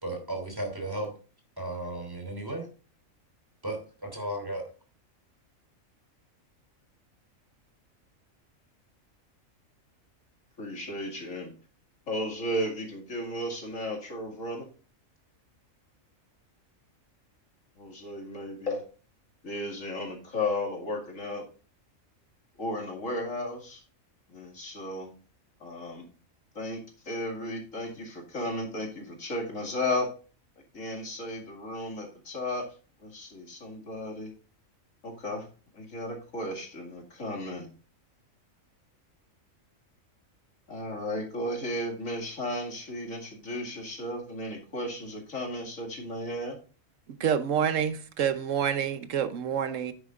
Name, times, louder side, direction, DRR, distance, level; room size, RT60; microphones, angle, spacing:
voice 1, 0.0-1.1 1.6-2.7 3.6-4.6, right 1 dB, 15° right, 2.9 m, -34 dB
voice 2, 10.6-11.5 12.1-14.7 17.8-18.8 19.4-21.5 22.6-23.8 24.3-25.1 25.6-26.1 26.5-30.1 30.7-32.7 33.0-34.3 35.0-35.5 35.7-37.7 40.7-46.6, left 1 dB, 70° left, 2.5 m, -34 dB
voice 3, 47.2-49.9, right 8 dB, 70° right, 1.1 m, -27 dB
9.6 x 9.4 x 2.5 m
omnidirectional pair, 1.4 m